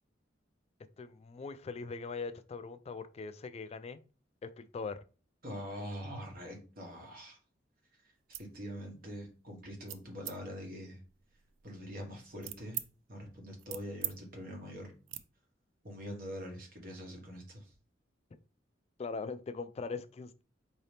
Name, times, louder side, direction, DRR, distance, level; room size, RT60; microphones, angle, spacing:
voice 1, 1.0-4.0 4.4-5.0 19.0-20.4, left 4 dB, 35° left, 11 dB, 0.3 m, -41 dB
voice 2, 5.4-7.4 8.0-8.1 8.4-11.0 11.6-12.8 13.1-14.9 15.8-17.7, equal, 50° right, 1 dB, 1.3 m, -44 dB
sound 1, 8.2-8.5 9.0-9.3 9.9-10.4 11.0-12.9 13.3-14.2 14.4-14.6 15.1-15.2, right 13 dB, 75° right, 0.4 m, -43 dB
4.8 x 2.8 x 3.3 m, 0.36 s
head